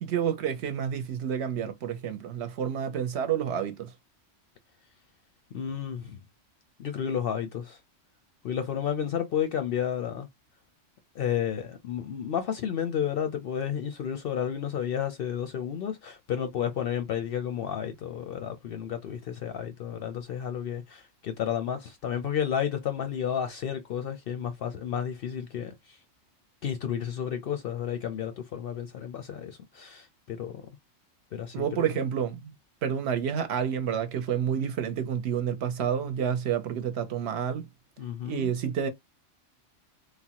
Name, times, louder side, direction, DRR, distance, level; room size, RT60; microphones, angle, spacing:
voice 1, 0.0-3.9 31.5-32.5 32.8-37.7 38.2-38.9, right 8 dB, 65° right, 0.8 m, -29 dB
voice 2, 5.5-6.2 6.8-7.8 8.4-10.3 11.1-26.0 26.6-30.7 31.3-31.9 38.0-38.5, left 9 dB, 60° left, 0.6 m, -32 dB
3.2 x 2.0 x 2.8 m
omnidirectional pair, 1.3 m